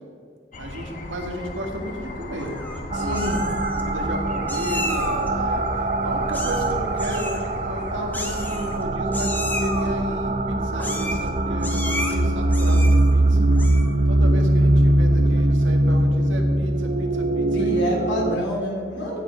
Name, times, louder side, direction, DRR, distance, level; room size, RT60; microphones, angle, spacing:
sound 1, 0.5-8.8, left 1 dB, 40° left, 0.9 m, -36 dB
voice 1, 0.6-3.4 3.8-13.5 14.1-18.0, equal, 85° right, 3 dB, 1.6 m, -33 dB
Meow, 2.4-2.8 3.1-3.8 4.5-5.3 6.3-6.7 7.0-7.4 8.1-8.8 9.1-9.9 10.8-11.3 11.6-12.1 12.5-13.1 13.5-13.9, left 1 dB, 10° left, 0.9 m, -32 dB
voice 2, 2.9-3.4 17.5-19.2, left 1 dB, 75° left, -1 dB, 2.8 m, -27 dB
sound 2, 2.9-18.4, right 1 dB, 35° right, 0.5 m, -21 dB
15.5 x 5.2 x 4.9 m, 2.2 s
head